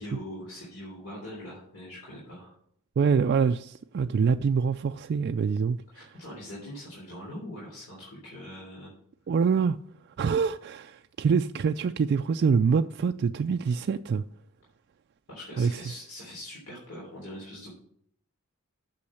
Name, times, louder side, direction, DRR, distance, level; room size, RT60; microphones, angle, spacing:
voice 1, 0.0-2.5 5.9-8.9 15.3-17.7, left 1 dB, 75° left, 3.4 m, -42 dB
voice 2, 3.0-5.8 9.3-9.8 10.2-14.2 15.6-15.9, right 5 dB, 50° right, 0.3 m, -25 dB
8.6 x 6.3 x 6.4 m
head